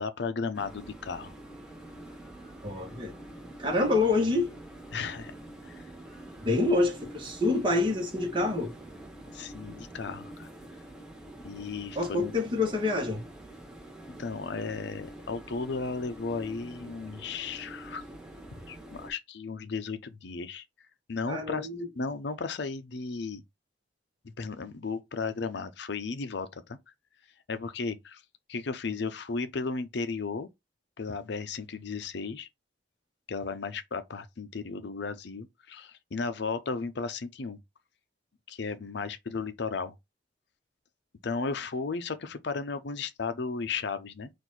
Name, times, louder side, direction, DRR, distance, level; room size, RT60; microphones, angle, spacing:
voice 1, 0.0-1.3 4.9-5.3 5.6-5.9 9.3-10.5 11.4-12.3 14.2-18.0 18.7-20.7 21.1-21.7 22.0-23.4 24.2-26.8 27.5-28.2 28.5-30.5 31.0-32.5 33.3-37.6 38.5-39.9 41.2-44.3, left 4 dB, 65° left, 0.6 m, -35 dB
sound 1, 0.5-19.1, right 1 dB, 5° right, 1.3 m, -46 dB
voice 2, 2.6-3.1 3.6-4.5 6.4-8.7 11.9-13.2 21.3-21.9, left 2 dB, 30° right, 1.4 m, -27 dB
4.5 x 2.6 x 4.0 m
head